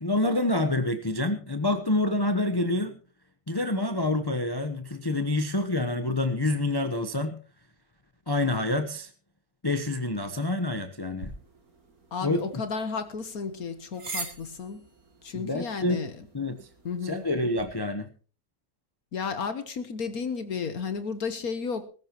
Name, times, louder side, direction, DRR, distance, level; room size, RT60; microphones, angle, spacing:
voice 1, 0.0-2.9 3.5-7.4 8.3-9.1 9.6-11.3 12.2-12.6 15.3-16.0 16.3-16.7 17.0-18.1, left 2 dB, 15° left, 7 dB, 0.8 m, -27 dB
sound 1, 11.2-17.7, right 3 dB, 55° right, 3.3 m, -44 dB
voice 2, 12.1-14.8 15.2-16.1 16.8-17.2 19.1-21.9, left 5 dB, 60° left, 11 dB, 1.5 m, -33 dB
19.0 x 15.0 x 3.0 m, 0.37 s
omnidirectional pair, 1.8 m